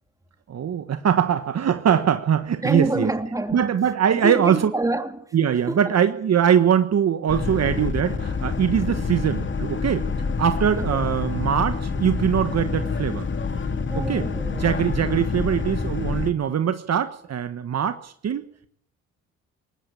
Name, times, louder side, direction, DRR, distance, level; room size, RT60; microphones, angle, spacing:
voice 1, 0.5-3.1 3.5-4.7 5.3-10.0 10.4-13.3 13.9-14.3 14.5-18.4, right 8 dB, 50° right, 1.4 m, -22 dB
voice 2, 2.6-3.7 4.1-5.3 5.7-6.0 10.8-11.1 13.8-14.8, right 2 dB, 10° right, 2.9 m, -28 dB
Boat Water vehicle, 7.3-16.3, left 4 dB, 35° left, 2.3 m, -27 dB
19.5 x 15.5 x 8.8 m
supercardioid pair, 70°, 33 cm